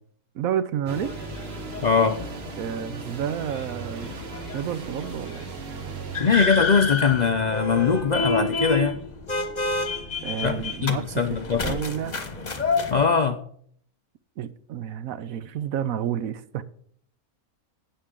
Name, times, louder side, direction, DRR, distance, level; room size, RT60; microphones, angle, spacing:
voice 1, 0.3-1.1 2.6-4.1 4.5-5.5 10.2-11.1 11.6-12.2 14.4-16.6, right 9 dB, 70° right, 1.0 m, -30 dB
sound 1, 0.9-13.1, left 3 dB, 30° left, 1.2 m, -30 dB
sound 2, 0.9-6.2, right 5 dB, 45° right, 1.0 m, -38 dB
voice 2, 1.8-2.2 6.2-9.0 10.4-10.6 10.8-11.8 12.9-13.4, left 5 dB, 75° left, 0.4 m, -21 dB
12.5 x 8.8 x 3.7 m
omnidirectional pair, 1.6 m